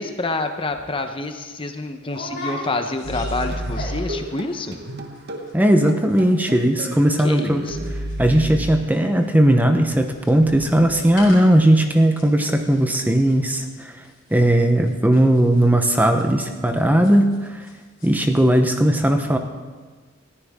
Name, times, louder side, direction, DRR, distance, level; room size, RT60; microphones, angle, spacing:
voice 1, 0.0-4.8 7.2-7.9, left 2 dB, 25° left, 6 dB, 0.9 m, -27 dB
sound 1, 0.7-0.9 1.2-1.4 2.1-4.2 4.5-4.9 5.2-5.3 5.5-5.8 6.1-17.7 18.0-18.4 18.7-18.8, left 1 dB, 45° left, 4.4 m, -38 dB
sound 2, 3.0-8.8, right 1 dB, 55° right, 1.4 m, -31 dB
voice 2, 5.5-7.6 8.2-13.9 14.3-17.7 18.0-19.4, right 1 dB, 10° right, 5 dB, 0.9 m, -17 dB
20.5 x 14.5 x 3.7 m, 1.4 s
head